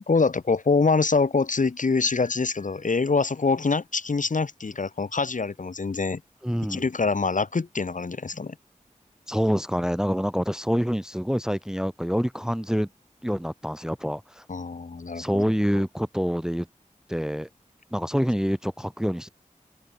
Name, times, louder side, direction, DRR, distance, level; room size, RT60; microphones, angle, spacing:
voice 1, 0.1-6.2 6.7-8.5 14.5-15.4 15.7-15.8, left 4 dB, 70° left, 1.1 m, -25 dB
sound 1, 2.0-3.6, left 2 dB, 45° left, 2.3 m, -48 dB
voice 2, 6.4-6.8 9.3-12.9 13.2-14.4 15.2-16.7 17.1-17.5 17.9-19.3, equal, 5° right, 0.6 m, -26 dB
open air
wide cardioid pair, 65°, 14 cm